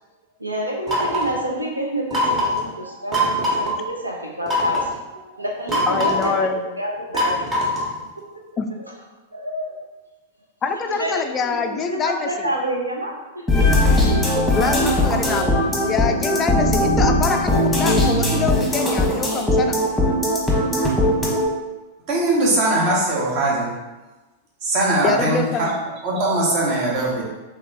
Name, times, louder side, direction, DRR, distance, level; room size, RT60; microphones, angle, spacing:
voice 1, 0.4-7.8 9.3-9.8 11.0-13.4, right 1 dB, 85° right, -1 dB, 0.7 m, -28 dB
sound 1, 0.9-1.4 2.1-2.6 3.1-3.7 4.5-4.9 5.7-6.4 7.1-8.0, equal, 20° right, 1.2 m, -22 dB
voice 2, 5.9-6.6 8.6-8.7 10.6-12.5 14.5-15.6 15.9-19.8 25.0-25.7, left 5 dB, 25° left, 6 dB, 0.3 m, -25 dB
sound 2, 13.5-21.5, left 1 dB, 5° left, 1.1 m, -19 dB
voice 3, 22.1-23.7 24.6-25.7 26.0-27.2, right 2 dB, 40° right, -3 dB, 1.2 m, -20 dB
3.5 x 3.4 x 3.4 m, 1.1 s
figure-of-eight pair, 95°, 0 cm